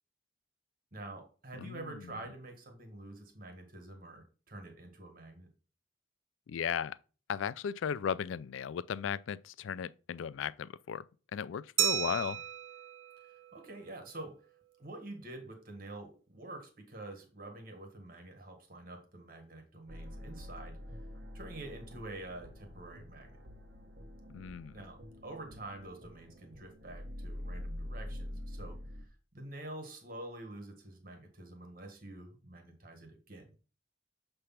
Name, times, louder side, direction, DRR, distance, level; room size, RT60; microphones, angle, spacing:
voice 1, 0.9-5.5 13.2-14.3 14.8-20.8 21.3-23.4 24.7-29.1 29.3-33.4, right 2 dB, 45° right, 1.6 m, -47 dB
voice 2, 1.6-2.1 6.5-7.0 7.3-11.1 11.3-12.4 24.3-24.8, left 7 dB, 90° left, 0.4 m, -36 dB
Glass, 11.8-14.2, right 10 dB, 85° right, 0.5 m, -35 dB
sound 1, 19.9-29.0, left 1 dB, 65° right, 1.1 m, -46 dB
6.8 x 3.3 x 5.8 m
head